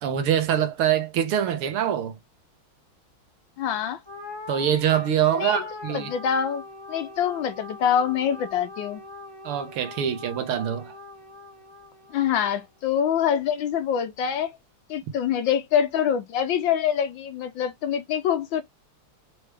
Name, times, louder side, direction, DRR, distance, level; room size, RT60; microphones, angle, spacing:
voice 1, 0.0-2.2 4.5-6.1 9.5-10.9, right 9 dB, 80° right, 1.9 m, -24 dB
voice 2, 3.6-4.0 5.3-5.6 5.9-6.6 6.9-9.0 12.1-14.5 14.9-18.6, left 8 dB, 75° left, 1.3 m, -25 dB
sound 1, 4.1-12.6, left 2 dB, 15° left, 0.9 m, -42 dB
4.6 x 3.1 x 3.3 m
omnidirectional pair, 2.4 m